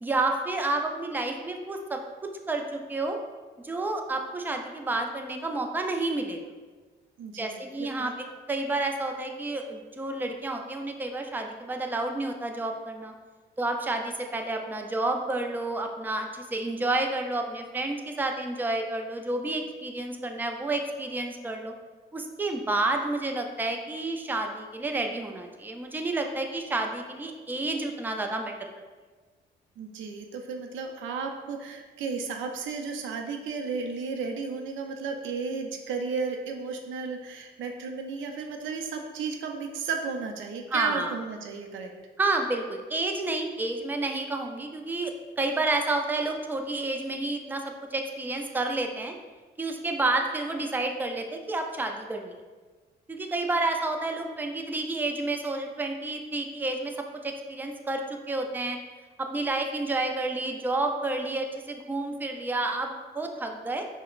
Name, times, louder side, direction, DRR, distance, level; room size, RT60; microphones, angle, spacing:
voice 1, 0.0-2.0 2.5-3.2 3.6-6.4 7.4-13.1 13.6-21.7 22.1-28.7 40.7-41.1 42.2-49.1 49.6-52.4 53.1-56.9 57.2-58.8 59.2-63.8, right 2 dB, 10° right, 3 dB, 0.3 m, -30 dB
voice 2, 7.2-8.1 29.8-41.9, right 5 dB, 75° right, 4 dB, 0.5 m, -34 dB
4.9 x 2.0 x 2.4 m, 1.4 s
cardioid pair, 90°, 20 cm